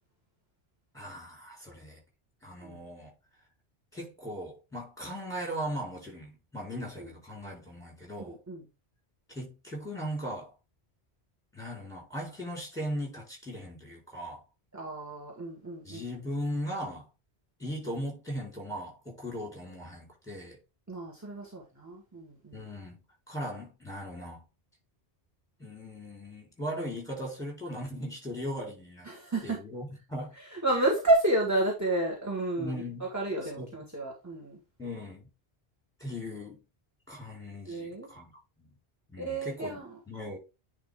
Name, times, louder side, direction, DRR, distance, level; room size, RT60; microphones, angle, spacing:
voice 1, 0.9-2.0 2.4-3.1 3.9-8.4 9.3-10.5 11.5-14.4 15.8-17.1 17.6-20.6 22.5-23.0 23.3-24.4 25.6-29.1 29.4-30.3 32.6-33.1 33.4-33.7 34.8-35.3 36.0-36.6 37.1-38.3 38.6-38.7 39.1-40.4, equal, 5° left, 4.1 m, -38 dB
voice 2, 8.2-8.6 14.7-16.0 20.9-22.6 29.0-29.6 30.4-32.8 33.1-34.6 37.7-38.1 39.2-39.9, right 2 dB, 15° right, 1.7 m, -31 dB
10.0 x 3.8 x 3.6 m
omnidirectional pair, 1.1 m